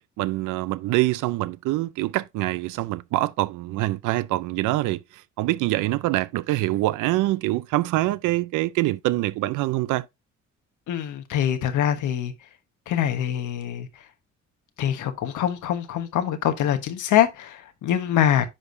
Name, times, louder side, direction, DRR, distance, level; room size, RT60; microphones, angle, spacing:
voice 1, 0.2-10.1, right 17 dB, 90° right, 0.5 m, -25 dB
voice 2, 10.9-12.3 12.9-13.9 14.8-18.5, left 10 dB, 80° left, 1.2 m, -24 dB
10.0 x 4.9 x 2.6 m
cardioid pair, 90°, 30 cm